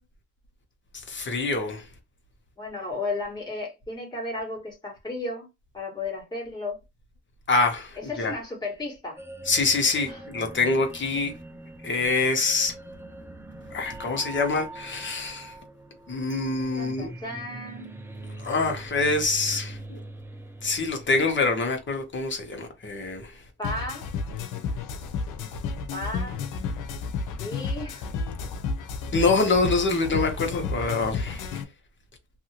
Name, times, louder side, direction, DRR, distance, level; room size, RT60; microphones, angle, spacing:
voice 1, 0.9-1.9 7.5-8.3 9.5-11.3 11.8-12.7 13.7-15.6 16.1-17.1 18.4-20.0 20.6-23.4 29.1-31.6, left 3 dB, 40° left, 1.1 m, -25 dB
voice 2, 2.6-5.5 5.7-6.8 8.1-9.2 10.0-10.2 16.8-17.9 23.6-24.1 25.9-26.4 27.4-28.1, left 2 dB, 15° left, 1.8 m, -34 dB
sound 1, 9.2-22.1, right 2 dB, 10° right, 0.6 m, -43 dB
sound 2, 23.6-31.6, left 4 dB, 85° left, 0.7 m, -32 dB
2.7 x 2.7 x 2.9 m
cardioid pair, 90°, 30 cm